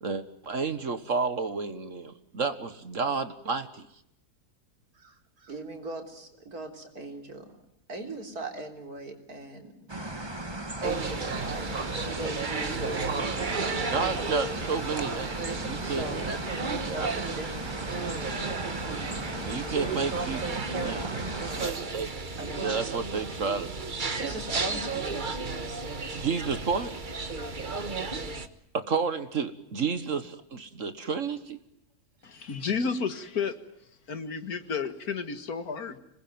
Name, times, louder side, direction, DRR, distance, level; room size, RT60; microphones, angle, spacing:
voice 1, 0.0-3.9 13.7-16.4 16.9-17.1 19.4-21.1 21.5-22.1 22.6-23.9 26.2-26.9 28.7-31.6, right 5 dB, 55° right, 11 dB, 1.7 m, -31 dB
voice 2, 5.5-7.6 7.9-10.0 10.8-11.7 12.1-14.8 15.8-16.4 16.8-19.9 20.7-22.0 22.4-22.9 24.1-25.5, right 2 dB, 70° right, 4 dB, 4.1 m, -40 dB
sound 1, 9.9-21.7, right 1 dB, 15° right, 1.7 m, -37 dB
sound 2, 10.8-28.5, right 4 dB, 35° right, 1.4 m, -33 dB
voice 3, 32.2-33.6 34.1-36.0, left 5 dB, 70° left, 10 dB, 2.2 m, -31 dB
26.5 x 20.0 x 9.4 m, 0.78 s
omnidirectional pair, 1.7 m